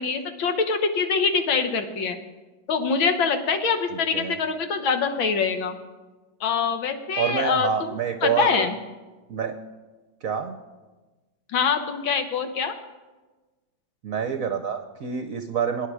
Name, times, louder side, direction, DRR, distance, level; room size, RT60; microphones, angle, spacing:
voice 1, 0.0-2.2 2.7-5.7 6.4-7.9 8.2-8.8 11.5-12.8, left 5 dB, 75° left, 7 dB, 1.9 m, -24 dB
voice 2, 7.2-8.7 9.3-9.5 10.2-10.6 14.0-15.9, right 7 dB, 60° right, 7 dB, 1.0 m, -27 dB
23.0 x 10.0 x 4.9 m, 1.2 s
omnidirectional pair, 2.1 m